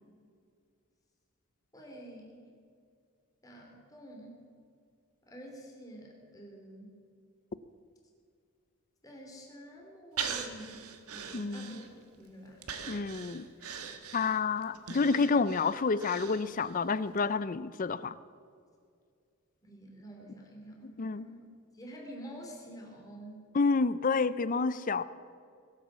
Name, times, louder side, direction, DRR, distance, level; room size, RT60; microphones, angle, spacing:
voice 1, 1.7-2.5 3.4-4.4 5.3-7.0 9.0-11.8 12.2-12.7 19.6-21.4 21.7-23.5, equal, 15° left, -1 dB, 3.1 m, -48 dB
Breathing, 10.2-12.1 12.6-16.8 17.2-17.3, right 7 dB, 85° right, 1.4 m, -41 dB
voice 2, 11.3-11.8 12.9-13.5 14.1-18.1 21.0-21.2 23.5-25.0, left 4 dB, 40° left, 16 dB, 0.5 m, -29 dB
21.0 x 8.2 x 7.3 m, 2.3 s
head